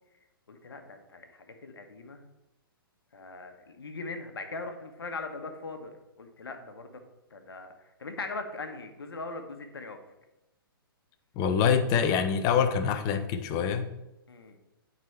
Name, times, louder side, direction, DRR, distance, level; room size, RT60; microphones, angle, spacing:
voice 1, 0.5-2.3 3.1-7.0 7.3-10.0 14.3-14.6, left 3 dB, 80° left, 6 dB, 1.2 m, -40 dB
voice 2, 11.4-13.9, left 7 dB, 30° left, 9 dB, 0.7 m, -25 dB
9.2 x 4.1 x 4.4 m, 0.95 s
hypercardioid pair, 125°, 12 cm